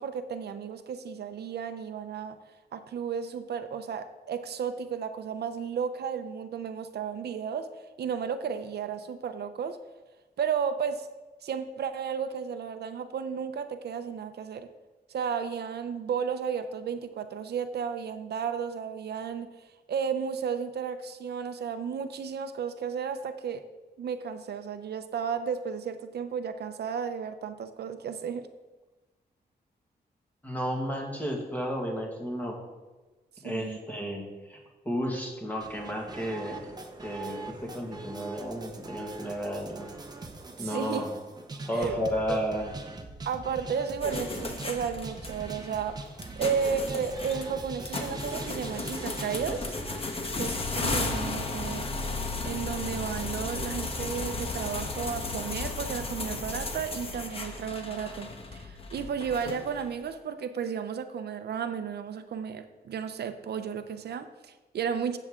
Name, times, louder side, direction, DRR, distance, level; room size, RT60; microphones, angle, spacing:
voice 1, 0.0-2.4 2.7-7.7 8.0-9.8 10.4-11.1 11.4-14.7 15.1-19.5 19.9-23.6 24.0-28.5 33.4-33.8 40.6-41.1 41.7-41.9 42.3-42.4 43.3-46.1 46.4-49.8 50.4-51.9 52.4-65.2, right 7 dB, 75° right, 9 dB, 0.7 m, -33 dB
voice 2, 30.4-32.6 33.4-34.2 34.5-34.6 34.9-36.7 37.0-39.9 40.6-41.1 41.7-42.7, equal, 10° left, 0 dB, 1.9 m, -32 dB
sound 1, 35.6-50.0, right 3 dB, 25° right, 0.9 m, -42 dB
sound 2, 44.0-60.0, left 3 dB, 35° left, 1.2 m, -35 dB
15.0 x 7.8 x 3.7 m, 1.2 s
wide cardioid pair, 180°, 17 cm